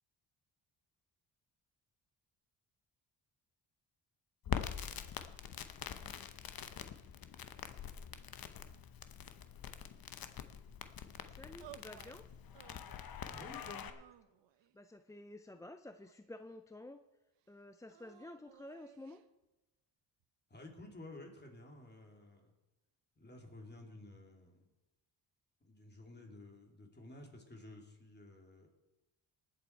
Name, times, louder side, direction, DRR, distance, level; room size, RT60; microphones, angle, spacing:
Crackle, 4.4-13.9, left 8 dB, 55° left, 0.9 m, -45 dB
voice 1, 11.3-12.3 14.7-17.0 17.5-19.2, left 2 dB, 10° left, 9 dB, 0.4 m, -51 dB
sound 1, 11.6-12.2 12.5-13.2 13.9-14.8 15.5-16.5 17.9-19.2, right 12 dB, 85° right, 0.8 m, -58 dB
voice 2, 13.3-13.9 20.5-22.5 23.2-24.7 25.6-28.7, left 2 dB, 25° left, 2 dB, 2.9 m, -53 dB
19.0 x 7.6 x 4.5 m, 1.0 s
cardioid pair, 95°, 43 cm